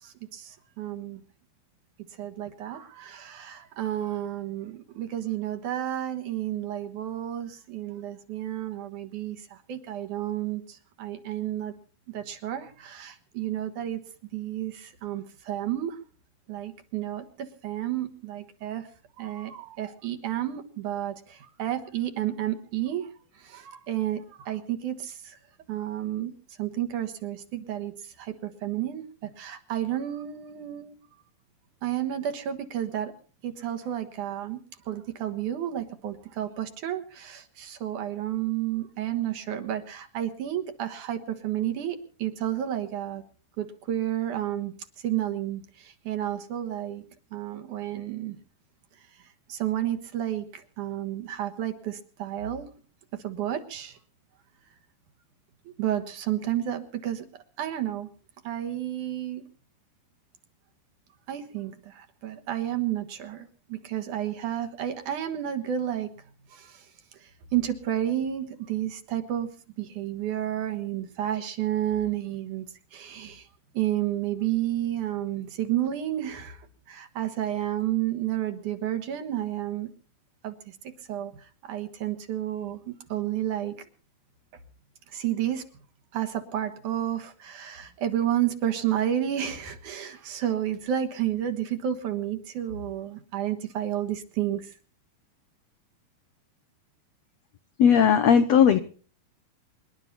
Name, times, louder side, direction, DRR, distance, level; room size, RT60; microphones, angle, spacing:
voice 1, 0.0-1.2 2.2-11.7 12.1-14.0 14.3-16.0 16.5-18.9 19.2-23.1 23.4-25.4 25.7-26.3 26.6-27.9 28.2-30.9 31.8-33.1 33.4-34.6 34.9-43.2 43.6-44.7 45.0-47.0 47.3-48.4 49.5-52.7 53.2-54.0 55.8-57.3 57.6-58.1 58.4-59.4 61.3-66.1 66.5-66.8 67.2-69.5 69.8-72.7 72.9-73.5 73.7-79.9 80.4-80.5 81.1-81.3 81.6-83.7 85.1-85.6 86.1-94.6, right 11 dB, 65° right, 6 dB, 2.8 m, -31 dB
voice 2, 97.8-98.8, left 7 dB, 80° left, 9 dB, 1.5 m, -17 dB
26.5 x 11.5 x 4.1 m, 0.40 s
omnidirectional pair, 4.2 m